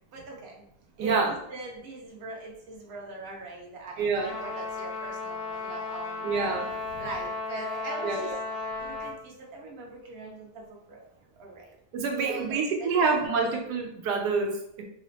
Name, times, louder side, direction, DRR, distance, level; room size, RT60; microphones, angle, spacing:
voice 1, 0.1-0.6 1.0-6.5 7.0-8.3 8.8-10.5 11.4-11.7 12.2-13.4, right 2 dB, 50° right, -2 dB, 0.9 m, -41 dB
voice 2, 1.0-1.4 4.0-4.4 6.2-7.0 8.0-8.9 11.9-14.8, right 4 dB, 80° right, 2 dB, 1.2 m, -28 dB
Trumpet, 4.2-9.2, left 3 dB, 65° left, 0.6 m, -35 dB
3.3 x 2.1 x 3.9 m, 0.73 s
omnidirectional pair, 1.8 m